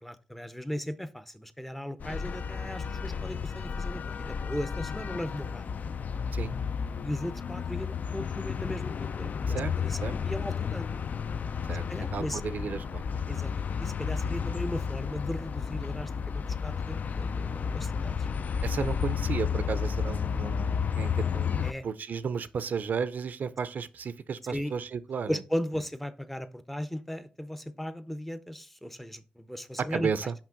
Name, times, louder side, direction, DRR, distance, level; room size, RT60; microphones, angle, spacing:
voice 1, 0.0-5.6 7.0-11.0 11.9-12.4 13.3-18.3 21.6-21.8 24.5-24.7 25.3-30.1, equal, 5° left, 0.5 m, -37 dB
sound 1, 2.0-21.7, left 6 dB, 60° left, 0.3 m, -32 dB
voice 2, 12.1-13.4 18.6-25.4 29.8-30.3, right 6 dB, 65° right, 0.4 m, -33 dB
5.8 x 5.2 x 3.7 m
wide cardioid pair, 130°, 3 cm